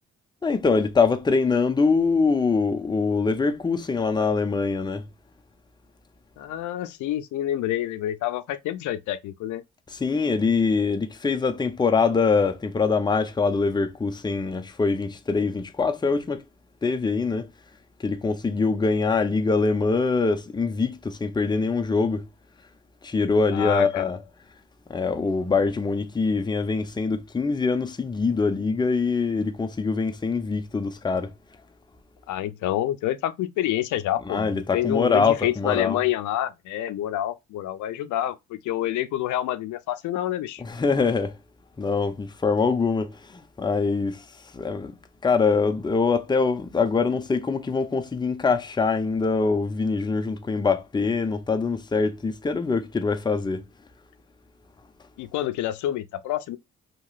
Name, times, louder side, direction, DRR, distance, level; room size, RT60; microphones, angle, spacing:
voice 1, 0.4-5.0 10.0-16.4 16.8-17.5 18.0-22.2 23.0-24.2 24.9-31.3 34.3-36.0 40.6-41.3 41.8-44.2 44.5-44.9 45.2-53.6, left 4 dB, 15° left, 0.5 m, -23 dB
voice 2, 6.4-9.6 23.5-24.1 32.3-40.6 55.2-56.6, left 13 dB, 75° left, 0.5 m, -28 dB
2.9 x 2.9 x 2.3 m
cardioid pair, 90°, 30 cm